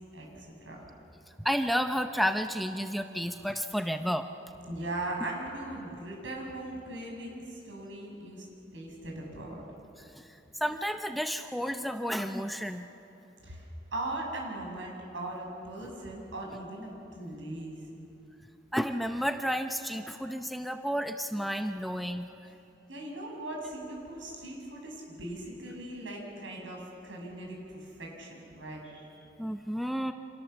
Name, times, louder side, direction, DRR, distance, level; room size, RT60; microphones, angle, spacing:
voice 1, 0.1-0.8 4.7-8.5 8.7-9.6 13.4-17.8 22.9-29.1, right 1 dB, 85° right, 0 dB, 7.7 m, -39 dB
voice 2, 1.4-4.3 10.2-10.3 10.6-12.9 18.7-22.3 29.4-30.1, equal, ahead, 6 dB, 0.7 m, -31 dB
30.0 x 27.0 x 7.1 m, 3.0 s
head